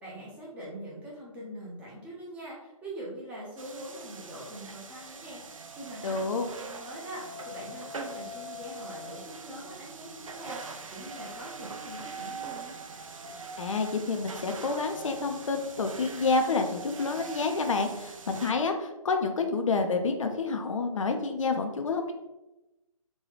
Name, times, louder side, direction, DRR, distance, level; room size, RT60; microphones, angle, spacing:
voice 1, 0.0-12.8, right 1 dB, 5° right, -5 dB, 0.6 m, -43 dB
sound 1, 3.6-18.5, right 3 dB, 70° right, 0.4 m, -42 dB
voice 2, 6.0-6.5 13.6-22.1, left 4 dB, 65° left, 5 dB, 0.5 m, -28 dB
4.0 x 2.3 x 3.0 m, 0.98 s
figure-of-eight pair, 135°, 18 cm